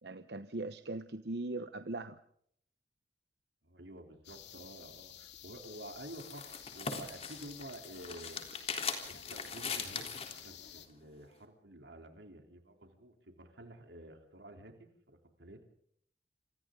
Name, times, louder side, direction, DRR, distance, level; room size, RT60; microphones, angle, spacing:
voice 1, 0.0-2.2, right 2 dB, 65° right, 10 dB, 1.0 m, -40 dB
voice 2, 3.6-8.5 8.7-15.6, right 1 dB, 85° right, 4 dB, 3.5 m, -51 dB
sound 1, 4.2-10.9, left 11 dB, 80° left, 2.4 m, -52 dB
sound 2, 5.6-10.5, left 5 dB, 35° left, 3.6 m, -40 dB
28.0 x 27.5 x 3.8 m, 0.67 s
head